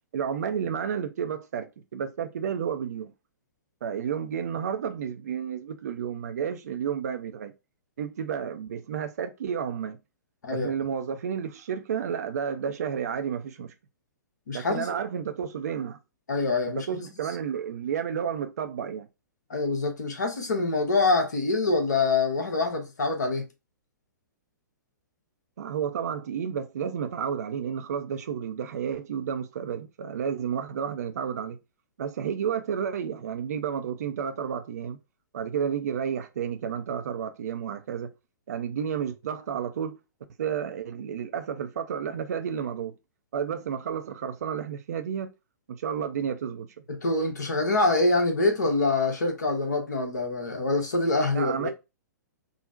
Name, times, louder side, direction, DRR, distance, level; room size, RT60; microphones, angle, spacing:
voice 1, 0.1-3.1 3.8-7.5 8.0-10.0 10.5-13.7 14.5-16.0 16.8-19.1 25.6-31.6 32.0-35.0 35.3-38.1 38.5-40.0 40.4-43.0 43.3-45.3 45.7-46.7 51.3-51.7, right 8 dB, 55° right, 0.4 m, -31 dB
voice 2, 14.5-14.9 16.3-17.1 19.5-23.5 46.9-51.7, left 3 dB, 70° left, 1.0 m, -25 dB
3.7 x 2.0 x 2.4 m
figure-of-eight pair, 115°, 10 cm